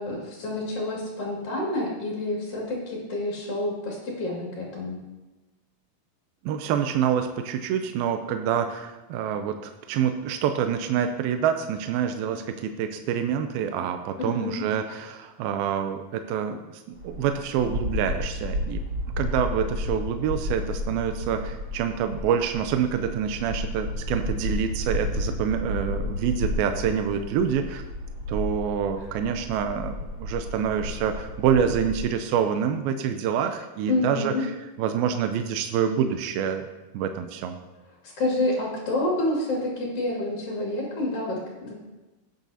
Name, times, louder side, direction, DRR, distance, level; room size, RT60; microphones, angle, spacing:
voice 1, 0.0-5.0 14.2-14.6 33.9-34.4 38.0-41.7, left 2 dB, 45° left, -4 dB, 2.7 m, -28 dB
voice 2, 6.5-18.8 19.2-27.8 28.3-34.5 34.8-36.7 36.9-37.6, right 8 dB, 80° right, 7 dB, 2.3 m, -27 dB
sound 1, 16.9-32.0, left 1 dB, 25° right, 2.4 m, -32 dB
16.0 x 9.1 x 2.8 m, 1.1 s
omnidirectional pair, 4.6 m